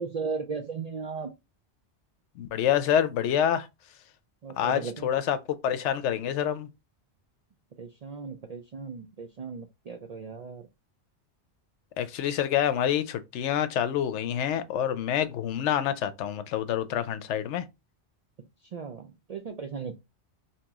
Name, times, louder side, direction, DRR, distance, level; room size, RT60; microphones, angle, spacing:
voice 1, 0.0-1.3 4.4-5.1 7.8-10.6 18.7-20.0, right 5 dB, 55° right, 0.4 m, -36 dB
voice 2, 2.4-3.7 4.6-5.4 5.6-6.7 12.0-17.6, left 9 dB, 85° left, 0.9 m, -27 dB
3.0 x 2.8 x 3.5 m
omnidirectional pair, 1.1 m